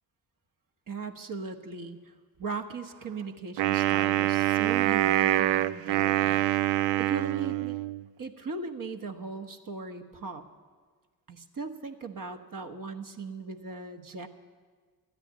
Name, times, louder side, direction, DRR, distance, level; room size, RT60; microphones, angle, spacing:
voice 1, 0.9-2.1 2.4-6.4 7.0-7.8 8.2-10.4 11.3-14.3, right 4 dB, 45° right, 5 dB, 1.4 m, -38 dB
Wind instrument woodwind instrument, 3.6-8.0, right 14 dB, 70° right, 0.5 m, -25 dB
13.0 x 9.8 x 8.8 m, 1.5 s
hypercardioid pair, 45°, 45 cm